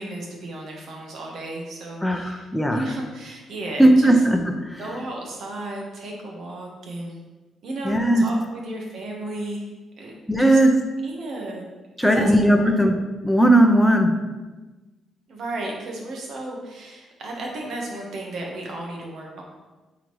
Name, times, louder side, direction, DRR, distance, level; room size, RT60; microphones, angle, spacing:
voice 1, 0.0-2.4 2.7-4.2 4.8-7.2 7.6-10.1 10.4-10.6 11.0-11.7 12.0-12.3 12.6-12.7 15.3-19.4, right 2 dB, 65° right, -1 dB, 1.4 m, -34 dB
voice 2, 2.0-2.8 3.8-4.8 7.8-8.2 10.3-10.8 12.0-13.0 13.2-14.1, right 1 dB, 5° left, 4 dB, 0.8 m, -17 dB
8.4 x 3.9 x 3.2 m, 1.2 s
cardioid pair, 90°, 0 cm